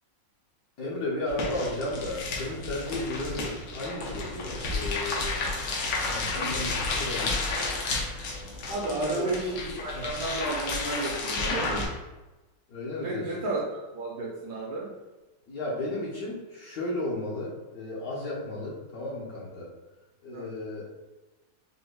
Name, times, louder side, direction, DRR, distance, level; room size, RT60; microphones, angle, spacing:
voice 1, 0.8-5.4 6.0-7.4 8.8-9.3 9.9-10.1 12.7-13.4 15.5-19.7 20.2-20.8, left 2 dB, 65° left, -5 dB, 1.0 m, -34 dB
sound 1, 1.3-11.9, left 3 dB, 85° left, 1.5 m, -32 dB
voice 2, 8.6-11.9 13.0-14.9 20.3-20.4, right 2 dB, 70° right, -3 dB, 1.0 m, -32 dB
5.1 x 2.1 x 2.3 m, 1.1 s
omnidirectional pair, 2.0 m